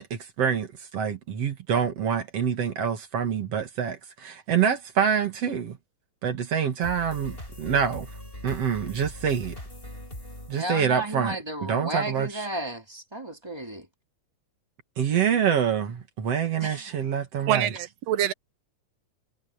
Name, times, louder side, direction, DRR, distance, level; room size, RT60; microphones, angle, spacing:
voice 1, 0.0-5.8 6.2-8.1 8.4-9.6 10.5-12.5 15.0-17.7, right 7 dB, 55° right, 2.9 m, -26 dB
sound 1, 6.8-11.5, left 1 dB, 15° left, 7.9 m, -41 dB
voice 2, 10.5-13.9 16.6-16.8, right 1 dB, 10° right, 2.9 m, -33 dB
voice 3, 17.5-18.3, right 11 dB, 70° right, 1.7 m, -25 dB
omnidirectional pair, 3.5 m